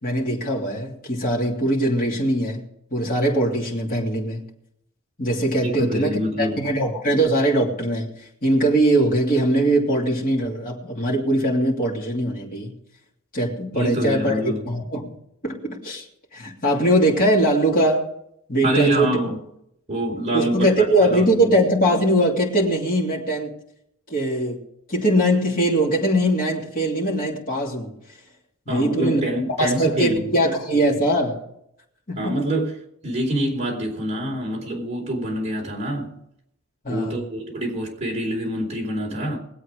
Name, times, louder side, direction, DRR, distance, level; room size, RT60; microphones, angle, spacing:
voice 1, 0.0-4.4 5.2-12.7 13.3-15.1 15.4-16.0 16.3-18.1 18.5-19.2 20.3-23.5 24.1-24.6 24.9-27.9 28.7-29.2 29.5-31.4 32.2-32.3 36.8-37.3, right 1 dB, 40° left, 2.9 m, -21 dB
voice 2, 5.6-6.6 13.7-14.6 18.6-19.4 19.9-20.7 21.0-21.5 28.7-30.3 32.2-32.7 33.0-36.1 36.9-39.4, right 1 dB, 30° right, 3.8 m, -25 dB
21.5 x 8.2 x 4.9 m
head